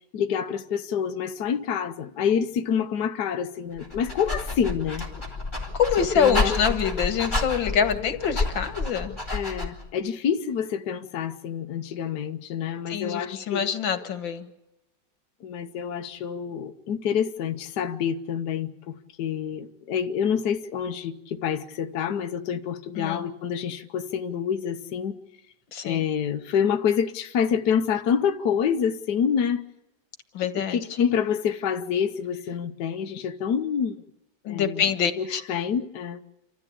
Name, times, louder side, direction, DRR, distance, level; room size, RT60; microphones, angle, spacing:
voice 1, 0.1-5.0 6.0-6.5 9.3-13.6 15.4-25.2 25.8-29.6 30.5-34.0 34.5-34.9 35.2-36.2, left 7 dB, 65° left, 1.4 m, -27 dB
Dog, 3.8-9.9, left 2 dB, 15° left, 4.2 m, -30 dB
voice 2, 5.7-9.2 12.9-14.5 23.0-23.3 25.7-26.0 30.3-30.8 34.4-35.4, left 7 dB, 90° left, 2.2 m, -25 dB
28.5 x 13.5 x 8.5 m
omnidirectional pair, 2.0 m